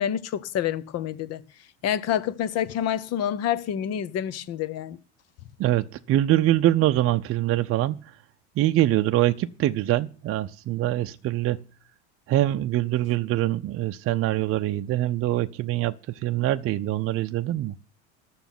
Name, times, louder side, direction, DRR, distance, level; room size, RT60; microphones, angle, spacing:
voice 1, 0.0-1.4 1.8-5.0, left 10 dB, 45° left, 1.1 m, -27 dB
voice 2, 5.6-8.0 8.6-11.6 12.3-17.7, right 14 dB, 40° right, 0.7 m, -24 dB
11.0 x 7.0 x 9.2 m
hypercardioid pair, 90°, 34 cm